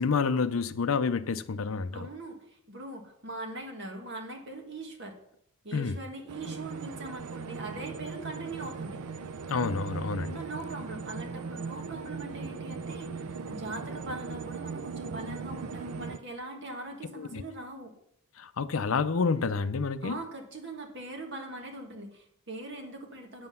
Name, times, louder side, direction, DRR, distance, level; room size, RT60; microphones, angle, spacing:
voice 1, 0.0-2.1 5.7-6.0 9.5-10.4 17.2-17.4 18.4-20.2, left 5 dB, 65° left, 0.5 m, -29 dB
voice 2, 1.9-5.2 5.6-9.0 10.3-17.9 20.0-23.5, right 2 dB, 50° right, 1.8 m, -41 dB
sound 1, 6.3-16.2, right 4 dB, 80° right, 0.5 m, -38 dB
9.5 x 7.7 x 5.5 m
head